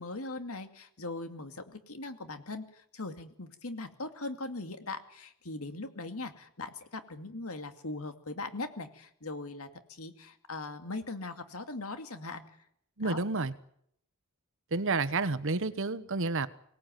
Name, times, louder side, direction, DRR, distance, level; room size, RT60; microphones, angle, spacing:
voice 1, 0.0-12.4 13.0-13.2, left 2 dB, 70° left, 2.3 m, -40 dB
voice 2, 13.0-13.5 14.7-16.5, right 3 dB, 60° right, 1.1 m, -30 dB
24.5 x 18.5 x 9.1 m
head